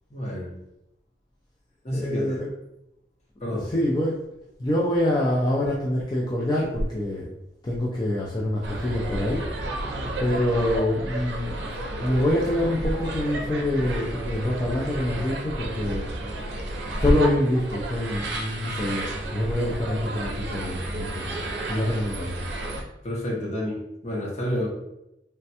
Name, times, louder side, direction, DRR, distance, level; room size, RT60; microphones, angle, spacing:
voice 1, 0.1-0.5 1.8-2.4 3.4-3.7 23.0-24.7, left 1 dB, 40° left, -3 dB, 0.8 m, -29 dB
voice 2, 1.9-2.5 3.4-4.2 4.6-7.3 7.6-9.4 10.2-11.6 12.0-16.0 16.9-19.0 19.3-21.4 21.7-22.4, left 1 dB, 25° left, -4 dB, 0.4 m, -25 dB
sound 1, 8.6-22.8, right 1 dB, 80° right, 0.5 m, -32 dB
3.3 x 2.2 x 2.7 m, 0.88 s
head